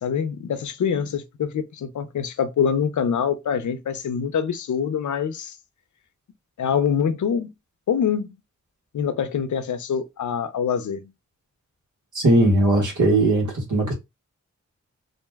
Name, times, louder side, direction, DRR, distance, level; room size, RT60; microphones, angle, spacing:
voice 1, 0.0-5.6 6.6-7.5 7.9-8.3 8.9-11.1, left 7 dB, 80° left, 0.5 m, -25 dB
voice 2, 12.1-13.9, right 2 dB, 80° right, 1.2 m, -19 dB
2.6 x 2.1 x 3.3 m
wide cardioid pair, 75°, 30 cm